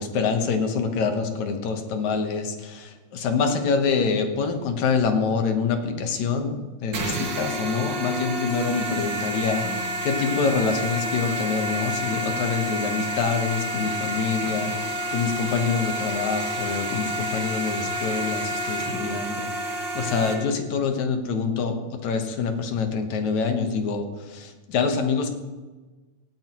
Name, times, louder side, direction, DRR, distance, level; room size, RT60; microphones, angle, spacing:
voice 1, 0.0-19.5 19.9-25.3, left 5 dB, 65° left, 6 dB, 2.3 m, -26 dB
sound 1, 6.9-20.3, right 1 dB, 60° right, 3.3 m, -29 dB
18.0 x 13.5 x 3.0 m, 1.3 s
omnidirectional pair, 3.8 m